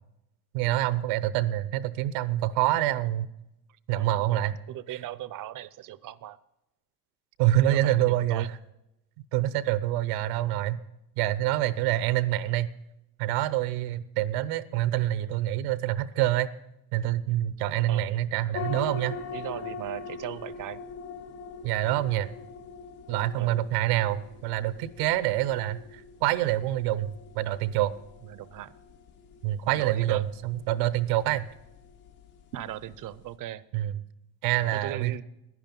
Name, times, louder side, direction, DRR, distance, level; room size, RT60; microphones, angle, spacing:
voice 1, 0.5-3.3 3.9-4.6 7.4-8.6 9.3-10.8 11.2-12.7 13.2-16.5 16.9-19.2 21.6-22.3 23.1-27.9 29.4-31.5 33.7-33.9 34.4-35.2, right 14 dB, 80° right, 16 dB, 0.9 m, -26 dB
voice 2, 3.9-6.4 7.7-8.5 17.9-18.1 19.3-20.8 23.4-23.6 28.2-28.7 29.6-30.2 32.5-33.6 34.7-35.2, right 13 dB, 45° right, 18 dB, 0.6 m, -38 dB
sound 1, 18.5-33.3, left 5 dB, 75° left, 2.3 m, -43 dB
11.0 x 10.0 x 5.3 m, 0.88 s
supercardioid pair, 100°, 47 cm